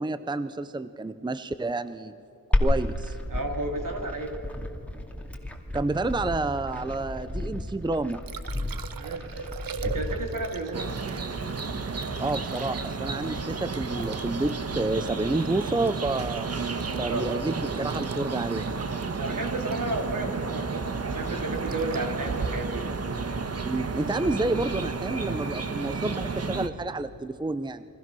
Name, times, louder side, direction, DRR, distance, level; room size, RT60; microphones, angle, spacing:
voice 1, 0.0-2.2 2.6-3.2 5.7-8.2 12.2-16.5 17.0-18.7 23.6-27.9, right 2 dB, 15° right, 12 dB, 0.6 m, -29 dB
Glass, 2.5-10.5, left 1 dB, 5° left, 2.5 m, -31 dB
voice 2, 3.3-4.4 9.0-9.3 9.8-10.9 16.7-17.4 19.2-22.8, right 2 dB, 65° right, 3 dB, 3.2 m, -32 dB
Liquid, 7.8-23.9 26.8-26.9, right 6 dB, 85° right, 0.9 m, -43 dB
sound 1, 10.7-26.7, right 4 dB, 45° right, 1.4 m, -32 dB
29.5 x 24.0 x 6.2 m, 2.6 s
wide cardioid pair, 110°, 34 cm